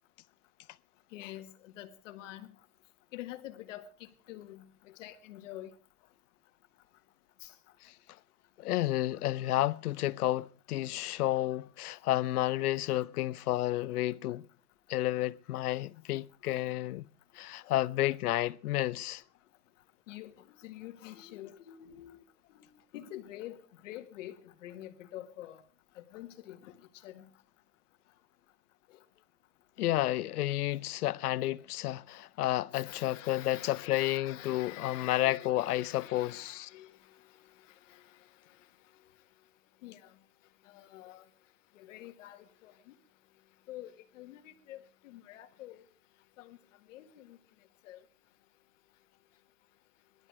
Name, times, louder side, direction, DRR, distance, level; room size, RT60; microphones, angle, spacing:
voice 1, 1.1-2.5 3.1-5.7 7.4-7.5 17.6-17.7 20.1-22.2 22.5-22.7 22.9-25.6 26.0-26.7 27.0-27.3 32.7-37.0 37.9-38.2 39.8-40.1 40.7-41.2 41.8-43.0 43.7-45.8 46.4-46.6 46.9-47.4 47.8-48.0, left 13 dB, 55° left, 1.8 m, -47 dB
voice 2, 8.6-14.5 14.9-17.1 17.3-19.2 29.8-36.7, left 15 dB, 80° left, 0.8 m, -31 dB
18.0 x 12.5 x 4.8 m
supercardioid pair, 160°, 44 cm